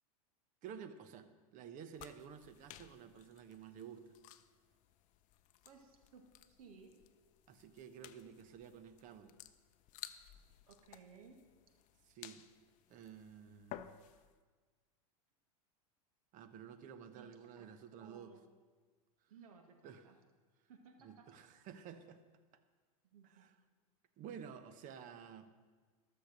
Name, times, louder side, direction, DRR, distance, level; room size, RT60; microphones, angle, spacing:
voice 1, 0.6-4.2 7.5-9.3 12.1-12.5 12.9-14.0 16.3-18.3 19.8-20.0 21.0-22.2 23.3-23.5 24.2-25.5, right 8 dB, 45° right, 10 dB, 1.1 m, -52 dB
sound 1, 1.9-14.4, left 12 dB, 45° left, 0.6 m, -56 dB
voice 2, 5.6-6.9 10.7-11.4 17.1-18.4 19.3-20.2 20.7-21.3 23.0-23.5, right 5 dB, 75° right, 4 dB, 2.0 m, -60 dB
13.5 x 6.7 x 6.6 m, 1.4 s
hypercardioid pair, 105°, 19 cm